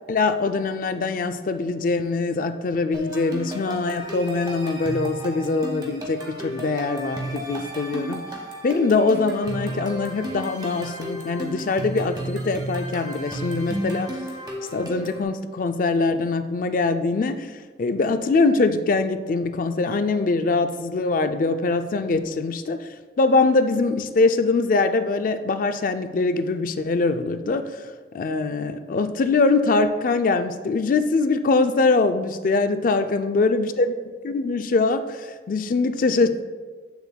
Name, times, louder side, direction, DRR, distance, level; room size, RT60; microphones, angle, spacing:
voice 1, 0.1-8.3 8.6-14.2 14.7-34.0 34.2-36.3, left 3 dB, 45° left, 9 dB, 0.3 m, -23 dB
sound 1, 2.9-15.2, right 1 dB, 25° right, 1.1 m, -33 dB
7.9 x 6.9 x 2.2 m, 1.5 s
head